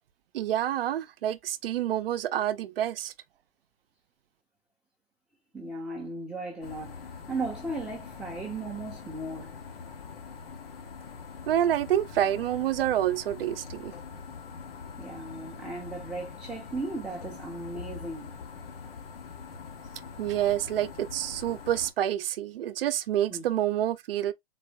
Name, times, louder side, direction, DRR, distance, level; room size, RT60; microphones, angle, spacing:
voice 1, 0.3-3.1 11.5-13.9 20.2-24.3, right 11 dB, 65° right, 0.6 m, -28 dB
voice 2, 5.5-9.5 15.0-18.3 23.3-23.5, right 2 dB, ahead, 0.5 m, -36 dB
sound 1, 6.6-21.9, left 5 dB, 65° left, 1.0 m, -43 dB
4.0 x 2.0 x 3.3 m
hypercardioid pair, 135°, 31 cm